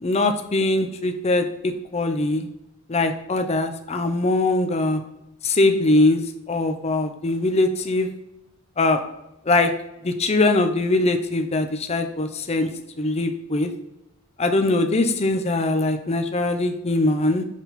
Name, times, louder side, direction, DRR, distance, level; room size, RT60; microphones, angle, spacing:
voice 1, 0.0-2.5 2.9-5.0 5.4-6.2 6.5-8.1 8.8-9.0 9.5-9.7 10.0-12.7 13.0-13.7 14.4-17.4, left 2 dB, 30° left, 6 dB, 0.6 m, -21 dB
6.2 x 4.1 x 4.1 m, 0.88 s
head